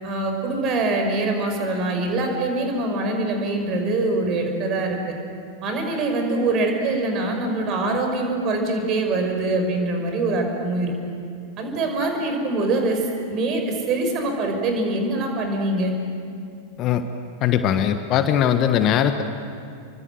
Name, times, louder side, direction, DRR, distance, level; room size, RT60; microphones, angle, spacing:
voice 1, 0.0-5.1 5.6-10.9 11.6-13.0 13.3-15.9, right 2 dB, 35° right, 4 dB, 5.6 m, -24 dB
voice 2, 17.4-19.2, left 9 dB, 35° left, 9 dB, 1.3 m, -20 dB
29.0 x 24.0 x 7.8 m, 2.4 s
figure-of-eight pair, 90°, 0 cm